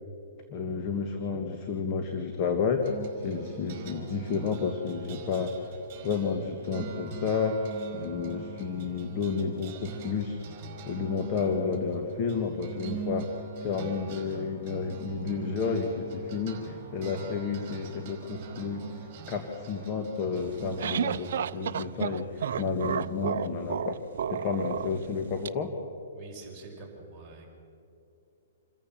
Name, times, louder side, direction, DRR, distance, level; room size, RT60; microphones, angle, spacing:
voice 1, 0.5-2.8 3.1-5.5 6.0-7.6 7.9-10.4 10.8-13.3 13.6-18.8 19.3-24.0 24.3-25.7, left 5 dB, 30° left, 4 dB, 1.7 m, -31 dB
sound 1, 2.8-21.4, right 5 dB, 35° right, 5.1 m, -43 dB
sound 2, 20.4-25.5, right 8 dB, 65° right, 0.6 m, -32 dB
voice 2, 26.1-27.5, right 3 dB, 15° right, -5 dB, 5.6 m, -46 dB
27.5 x 14.0 x 7.5 m, 2.6 s
hypercardioid pair, 150°, 0 cm